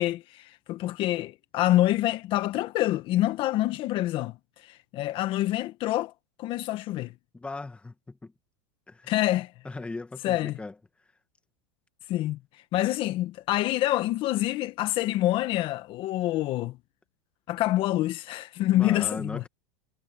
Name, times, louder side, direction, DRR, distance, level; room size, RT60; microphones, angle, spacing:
voice 1, 0.0-6.1 6.4-7.1 9.1-9.5 10.2-10.6 12.1-16.8 17.5-19.4, left 15 dB, 45° left, 1.5 m, -27 dB
voice 2, 7.3-8.3 8.9-9.1 9.6-10.7 18.7-19.5, left 3 dB, 10° left, 2.0 m, -38 dB
supercardioid pair, 130°, 13 cm